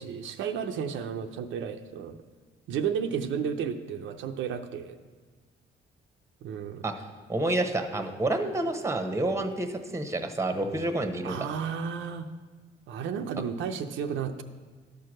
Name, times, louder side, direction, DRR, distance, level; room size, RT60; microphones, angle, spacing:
voice 1, 0.0-2.2 2.7-5.0 6.4-6.8 11.2-12.3 12.9-14.4, right 7 dB, 80° right, 6 dB, 0.6 m, -32 dB
voice 2, 7.3-11.4, right 2 dB, 15° right, 7 dB, 0.9 m, -29 dB
11.5 x 4.7 x 6.3 m, 1.4 s
cardioid pair, 90°, 20 cm